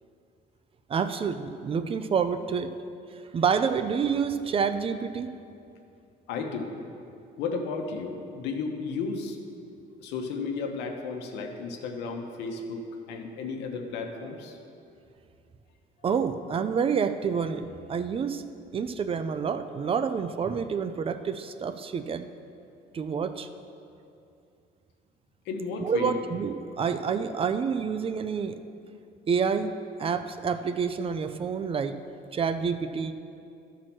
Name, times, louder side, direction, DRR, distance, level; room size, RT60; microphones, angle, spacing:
voice 1, 0.9-2.7 3.3-5.3 16.0-18.4 18.7-22.3 22.9-23.5 25.8-28.6 29.3-29.7 30.0-31.9 32.3-33.1, right 6 dB, 35° right, 10 dB, 0.5 m, -28 dB
voice 2, 6.3-6.7 7.4-9.4 10.0-14.6 25.4-26.2, left 4 dB, 90° left, 3 dB, 1.0 m, -33 dB
12.0 x 4.7 x 6.0 m, 2.6 s
cardioid pair, 110°, 17 cm